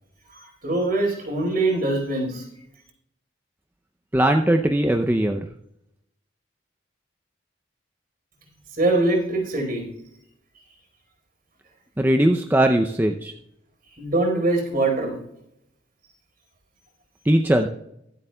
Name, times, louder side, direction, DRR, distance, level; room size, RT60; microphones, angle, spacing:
voice 1, 0.3-2.5 8.7-9.8 14.0-15.2, right 2 dB, 50° right, 1 dB, 4.3 m, -23 dB
voice 2, 4.1-5.4 12.0-13.3 17.3-17.7, right 1 dB, 10° right, 4 dB, 0.5 m, -19 dB
24.0 x 8.1 x 2.3 m, 0.76 s
head